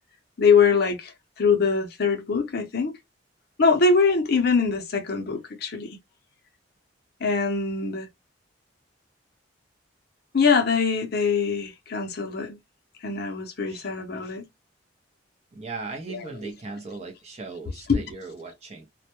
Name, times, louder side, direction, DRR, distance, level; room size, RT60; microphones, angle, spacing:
voice 1, 0.4-2.9 3.6-5.9 7.2-8.1 10.3-12.6 13.0-14.5 16.1-16.5 17.9-18.0, left 5 dB, 55° left, 0.6 m, -23 dB
voice 2, 15.5-18.9, right 3 dB, 35° right, 0.5 m, -37 dB
2.2 x 2.1 x 2.8 m
head